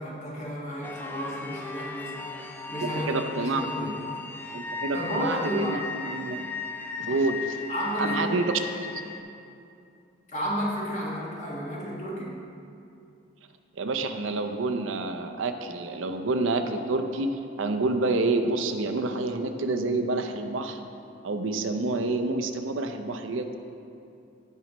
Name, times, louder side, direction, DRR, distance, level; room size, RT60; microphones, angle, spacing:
voice 1, 0.0-2.2 2.7-4.0 4.9-5.8 7.7-8.5 10.3-12.4, equal, 35° left, -5 dB, 1.6 m, -32 dB
sound 1, 0.8-9.2, left 4 dB, 10° left, 0.3 m, -37 dB
voice 2, 2.8-4.0 4.5-6.4 7.0-7.6 8.0-8.6 13.8-20.8 21.2-23.6, right 3 dB, 75° right, 6 dB, 0.6 m, -28 dB
16.5 x 5.5 x 3.1 m, 2.6 s
head